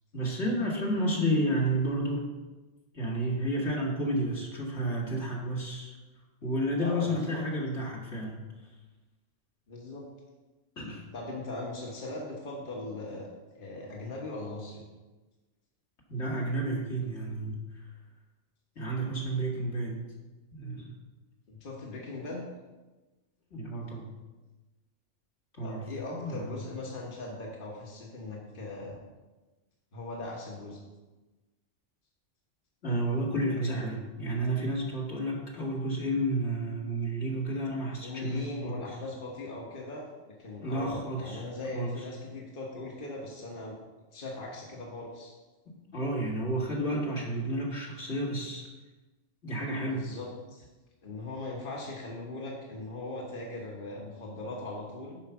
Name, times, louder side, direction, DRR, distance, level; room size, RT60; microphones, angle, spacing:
voice 1, 0.1-2.3 2.9-5.9 6.4-8.5 10.8-11.1 16.1-17.8 18.8-20.0 20.5-20.9 23.5-24.2 25.6-26.6 32.8-38.8 40.6-41.4 41.7-42.0 45.7-48.7 49.4-50.1, right 1 dB, 65° left, -3 dB, 2.3 m, -31 dB
voice 2, 6.8-7.4 9.7-10.0 11.1-13.3 13.5-14.8 21.5-22.4 25.6-28.9 29.9-30.8 38.0-43.8 44.1-45.3 49.9-50.7 51.0-55.2, left 2 dB, 45° left, -3 dB, 1.5 m, -39 dB
10.5 x 4.8 x 5.8 m, 1.2 s
omnidirectional pair, 1.2 m